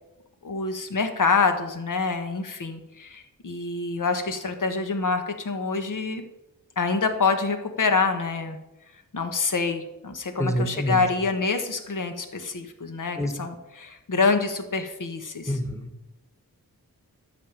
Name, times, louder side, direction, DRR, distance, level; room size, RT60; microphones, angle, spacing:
voice 1, 0.4-6.2 6.8-8.6 9.1-15.5, left 4 dB, 60° left, 6 dB, 1.4 m, -26 dB
voice 2, 10.4-11.1 13.1-13.3 15.5-16.1, equal, 10° left, 5 dB, 1.5 m, -27 dB
12.0 x 5.4 x 7.4 m, 0.93 s
wide cardioid pair, 110°, 35 cm